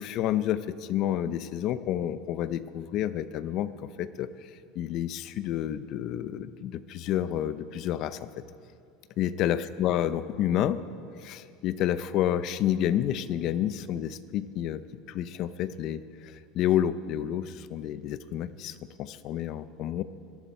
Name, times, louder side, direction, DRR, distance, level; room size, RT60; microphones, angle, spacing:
voice 1, 0.0-3.7 4.0-4.3 4.8-8.3 9.2-10.8 11.2-14.8 15.1-16.0 16.5-20.0, left 11 dB, 45° left, 14 dB, 0.6 m, -29 dB
24.0 x 13.5 x 4.4 m, 2.4 s
cardioid pair, 165°, 0 cm